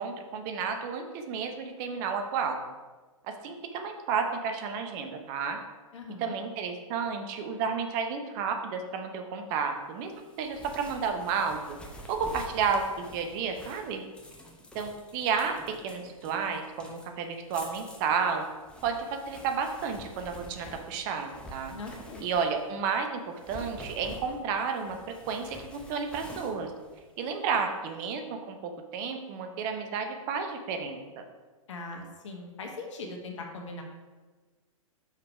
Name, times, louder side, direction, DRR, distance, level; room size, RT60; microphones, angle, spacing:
voice 1, 0.0-2.6 3.2-5.6 6.2-10.1 10.4-11.8 12.1-14.0 14.7-18.4 18.8-21.7 22.2-26.7 27.2-31.2, right 5 dB, 35° right, 5 dB, 0.8 m, -32 dB
voice 2, 5.9-6.3 21.7-22.3 31.7-33.8, left 3 dB, 60° left, 2 dB, 1.3 m, -40 dB
sound 1, 10.1-22.7 23.3-27.6, equal, 5° left, 0.8 m, -48 dB
5.8 x 4.8 x 4.7 m, 1.3 s
figure-of-eight pair, 110°, 18 cm